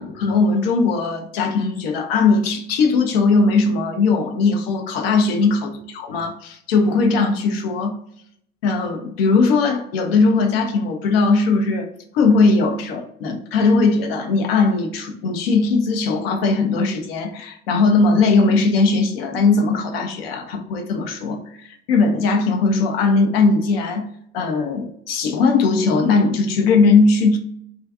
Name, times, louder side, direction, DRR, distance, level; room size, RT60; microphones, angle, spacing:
voice 1, 0.0-8.0 8.6-11.9 12.1-24.1 24.3-27.4, left 4 dB, 60° left, 4 dB, 0.6 m, -19 dB
2.4 x 2.3 x 2.4 m, 0.70 s
figure-of-eight pair, 70°, 34 cm